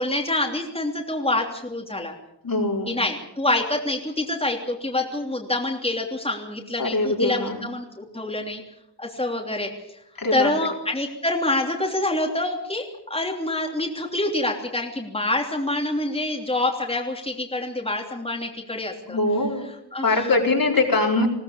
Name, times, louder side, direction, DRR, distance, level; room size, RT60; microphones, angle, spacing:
voice 1, 0.0-2.1 2.9-8.6 9.0-10.0 10.3-19.2 19.9-20.3, left 2 dB, 15° left, 1 dB, 3.1 m, -26 dB
voice 2, 2.4-3.0 6.8-7.6 10.2-10.5 19.1-19.6 20.0-21.3, left 2 dB, 55° left, 1 dB, 4.6 m, -22 dB
21.0 x 17.0 x 8.6 m, 0.80 s
wide cardioid pair, 90°, 41 cm